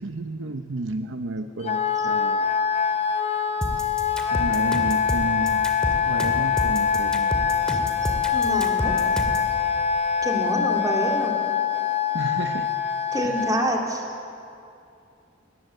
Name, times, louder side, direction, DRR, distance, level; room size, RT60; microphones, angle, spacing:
voice 1, 0.0-2.5 4.3-5.6 6.0-7.3 12.1-12.7, right 2 dB, 70° right, 7 dB, 0.9 m, -31 dB
Wind instrument woodwind instrument, 1.6-13.7, left 7 dB, 30° left, 0.9 m, -24 dB
sound 1, 3.6-9.5, equal, 5° left, 2.0 m, -29 dB
voice 2, 8.3-9.0 10.2-11.4 13.1-14.0, right 1 dB, 20° right, 0 dB, 2.9 m, -26 dB
19.5 x 19.0 x 7.8 m, 2.6 s
head